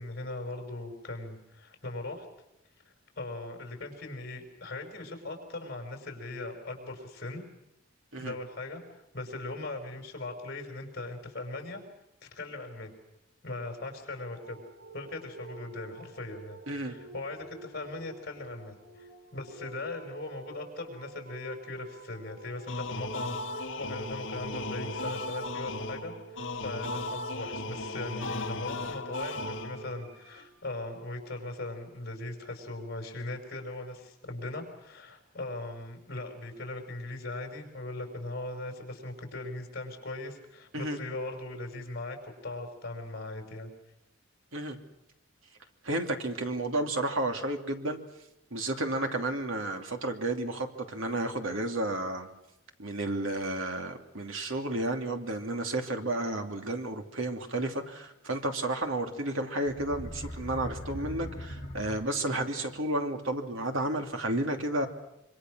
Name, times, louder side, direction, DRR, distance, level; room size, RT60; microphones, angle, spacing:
voice 1, 0.0-2.3 3.2-7.4 8.2-11.8 12.2-12.9 13.4-14.6 14.9-43.7, left 2 dB, 50° left, 4 dB, 5.3 m, -39 dB
sound 1, 14.1-30.4, right 2 dB, 55° right, 6.0 m, -50 dB
sound 2, 22.7-30.1, left 2 dB, 65° left, 1.9 m, -36 dB
voice 2, 45.8-48.0 48.5-52.3 52.8-64.9, right 1 dB, 80° right, 4 dB, 2.8 m, -32 dB
sound 3, 59.7-62.5, equal, 30° left, 6.4 m, -40 dB
26.0 x 25.5 x 6.3 m, 0.90 s
head